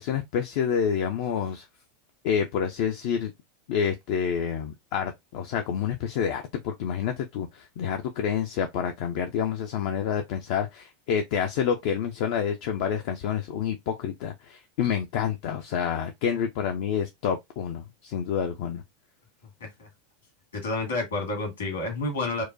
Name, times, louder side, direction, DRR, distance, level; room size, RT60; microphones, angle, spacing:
voice 1, 0.0-1.7 2.2-3.3 3.7-18.8, left 8 dB, 50° left, 0.4 m, -28 dB
voice 2, 20.5-22.4, left 2 dB, 70° left, 1.7 m, -29 dB
4.5 x 2.2 x 2.5 m
figure-of-eight pair, 85°, 0 cm